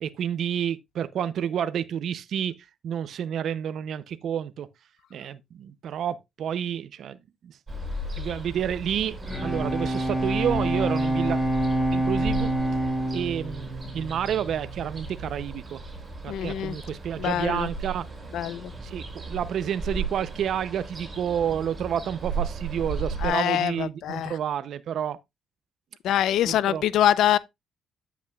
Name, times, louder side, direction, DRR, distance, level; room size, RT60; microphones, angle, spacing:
voice 1, 0.0-2.5 2.8-4.7 5.1-7.2 7.4-7.6 8.2-11.4 11.9-12.5 13.1-15.8 16.2-18.0 18.8-25.2 26.5-26.8, right 9 dB, 70° right, 0.6 m, -29 dB
Ocean, 7.7-23.3, right 2 dB, 30° right, 5.2 m, -35 dB
Bowed string instrument, 9.0-14.8, right 1 dB, 5° left, 4.6 m, -27 dB
voice 2, 16.3-16.8 17.2-17.7 18.3-18.7 23.2-24.3 26.0-27.4, left 11 dB, 80° left, 0.6 m, -24 dB
9.4 x 8.1 x 2.4 m
cardioid pair, 90°, 0 cm